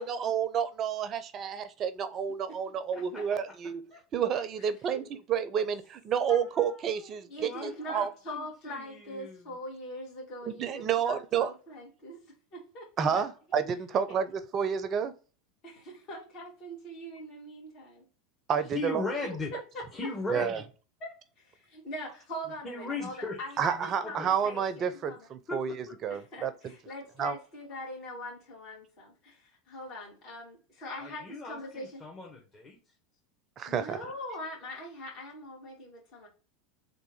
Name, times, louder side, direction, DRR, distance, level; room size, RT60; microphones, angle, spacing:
voice 1, 0.0-3.8 4.1-8.1 10.5-11.5 13.0-15.1 18.5-19.0 20.3-20.6 23.6-25.8 26.0-26.5 27.2-27.4 33.6-34.0, right 7 dB, 40° right, 0.5 m, -30 dB
voice 2, 2.9-3.3 3.9-4.0 4.3-4.4 4.9-5.0 6.3-12.2 12.5-13.2 14.1-14.2 15.6-18.1 20.0-20.1 21.0-25.3 26.1-32.0 33.7-36.3, equal, 50° left, 2.2 m, -42 dB
voice 3, 7.4-9.4 13.1-13.2 18.7-19.5 19.9-20.6 22.6-23.4 23.7-24.3 25.5-25.8 31.0-32.8, left 3 dB, 25° left, 1.1 m, -38 dB
3.6 x 2.6 x 4.3 m
hypercardioid pair, 85°, 0 cm